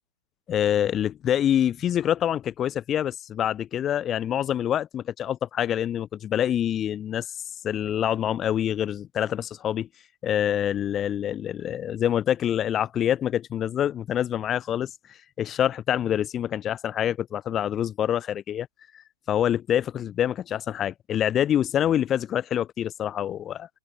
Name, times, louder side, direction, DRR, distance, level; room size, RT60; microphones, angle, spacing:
voice 1, 0.5-7.3 7.6-9.9 10.2-14.9 15.4-18.7 19.3-23.7, left 10 dB, 25° left, 2.4 m, -26 dB
figure-of-eight pair, 105°, 0 cm